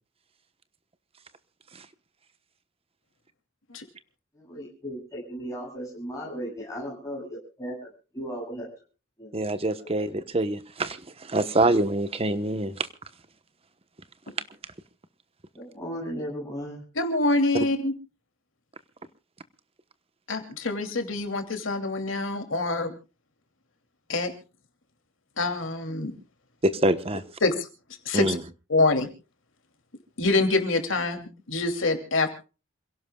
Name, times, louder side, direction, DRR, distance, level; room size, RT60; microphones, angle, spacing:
voice 1, 4.3-8.7 9.2-9.3 9.8-9.9 15.5-16.8, equal, 15° left, 7.9 m, -36 dB
voice 2, 9.3-12.9 26.6-27.2 28.1-28.3, right 2 dB, 30° right, 1.1 m, -25 dB
voice 3, 16.9-17.9 20.3-22.9 24.1-24.3 25.4-26.1 27.4-28.4 28.7-29.1 30.2-32.3, left 2 dB, 85° left, 2.8 m, -25 dB
28.0 x 17.0 x 2.3 m
head